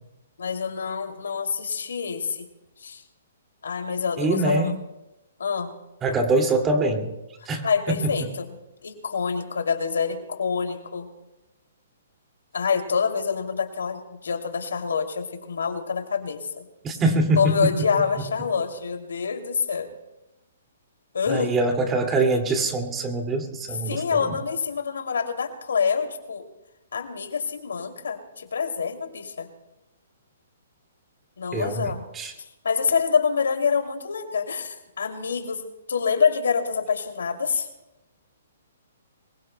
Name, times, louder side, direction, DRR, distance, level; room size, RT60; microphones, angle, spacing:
voice 1, 0.4-2.5 2.8-3.0 3.6-4.7 5.4-5.7 7.6-11.1 12.5-16.6 17.4-19.9 21.1-21.5 23.9-26.4 26.9-29.5 31.4-32.0 32.6-35.6 35.9-37.7, left 6 dB, 85° left, 5 dB, 2.6 m, -26 dB
voice 2, 4.2-4.7 6.0-7.1 7.5-7.6 16.8-17.5 21.3-24.4 31.5-32.3, right 2 dB, 15° right, 4 dB, 2.3 m, -23 dB
25.0 x 22.0 x 2.2 m, 0.96 s
hypercardioid pair, 145°, 0 cm